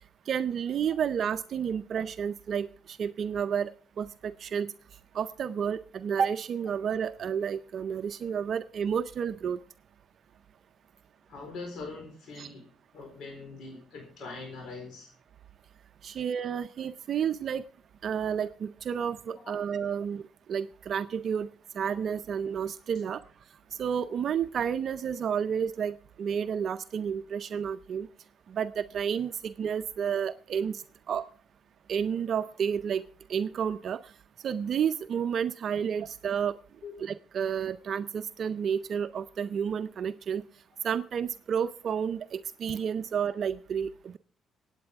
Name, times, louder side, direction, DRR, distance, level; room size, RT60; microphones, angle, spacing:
voice 1, 0.3-3.7 4.0-4.7 5.1-9.6 12.4-12.5 16.0-17.6 18.0-20.2 20.5-21.5 21.8-23.2 23.8-28.1 28.5-30.8 31.1-31.2 31.9-33.0 33.3-34.0 34.4-36.5 37.0-40.4 40.8-44.2, right 7 dB, 60° right, 11 dB, 0.5 m, -31 dB
voice 2, 11.3-12.7 12.9-15.1 36.8-36.9, left 3 dB, 75° left, 2 dB, 4.3 m, -42 dB
26.0 x 8.9 x 3.5 m, 0.42 s
cardioid pair, 90°, 0 cm